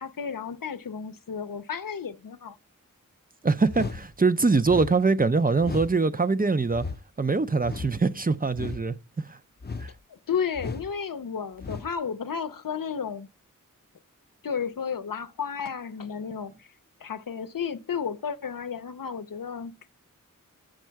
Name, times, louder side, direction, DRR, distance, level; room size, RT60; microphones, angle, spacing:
voice 1, 0.0-2.6 10.1-13.3 14.4-16.7 17.0-19.9, left 6 dB, 85° left, 0.6 m, -33 dB
voice 2, 3.4-6.9 7.2-9.4 9.8-9.9, right 4 dB, 30° right, 0.4 m, -23 dB
sound 1, 3.7-4.0 4.6-4.9 5.6-5.9 6.7-7.0 7.6-8.0 8.5-8.8 9.6-9.9 10.6-10.9 11.6-11.9, left 4 dB, 30° left, 0.6 m, -35 dB
7.2 x 6.5 x 4.5 m
wide cardioid pair, 55°, 32 cm